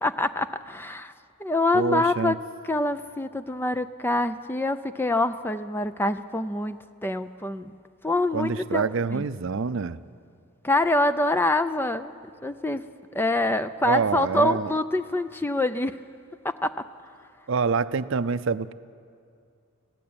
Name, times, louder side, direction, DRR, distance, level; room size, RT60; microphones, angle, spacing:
voice 1, 0.0-1.1 1.4-2.4 2.6-7.7 8.0-8.8 9.1-9.2 10.6-12.1 12.4-12.8 13.1-16.0 16.4-16.7, left 2 dB, 10° left, 11 dB, 0.4 m, -25 dB
voice 2, 1.7-2.3 8.3-10.0 13.8-14.8 17.5-18.7, right 5 dB, 60° right, 14 dB, 0.5 m, -26 dB
21.5 x 15.5 x 8.7 m, 2.4 s
head